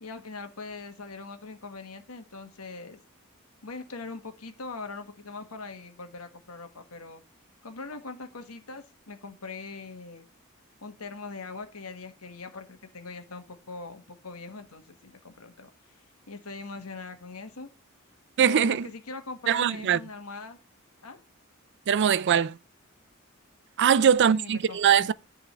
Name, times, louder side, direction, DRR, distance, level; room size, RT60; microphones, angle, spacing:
voice 1, 0.0-3.0 3.6-7.2 7.6-10.3 10.8-15.7 16.3-17.7 18.4-20.6 21.0-21.2 23.9-25.1, left 3 dB, 85° left, 1.4 m, -41 dB
voice 2, 18.4-18.9 19.5-20.0 21.9-22.6 23.8-25.1, right 8 dB, 55° right, 0.4 m, -21 dB
10.5 x 3.7 x 6.7 m
head